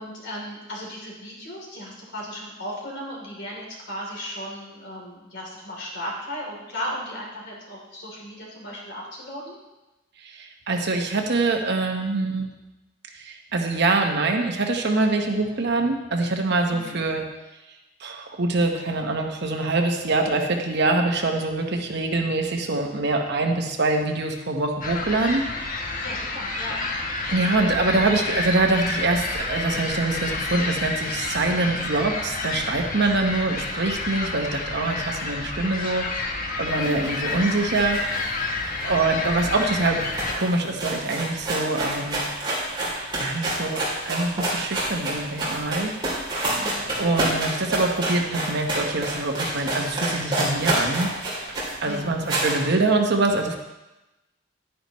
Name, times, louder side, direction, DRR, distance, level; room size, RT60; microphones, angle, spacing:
voice 1, 0.0-9.6 16.6-17.0 26.0-26.9 36.8-37.6 46.5-46.9 51.8-52.4, equal, 60° left, -3 dB, 3.3 m, -36 dB
voice 2, 10.2-12.5 13.1-17.2 18.0-25.9 27.3-38.4 38.8-40.0 40.3-42.4 43.2-45.9 47.0-51.1 51.4-51.6 51.8-53.6, right 2 dB, 60° right, 3 dB, 1.1 m, -24 dB
sound 1, 24.8-40.3, left 3 dB, 45° left, 1.1 m, -29 dB
sound 2, 36.7-39.4 39.6-39.7 39.9-52.6, right 1 dB, 25° right, 3.2 m, -28 dB
10.5 x 9.9 x 3.1 m, 1.0 s
head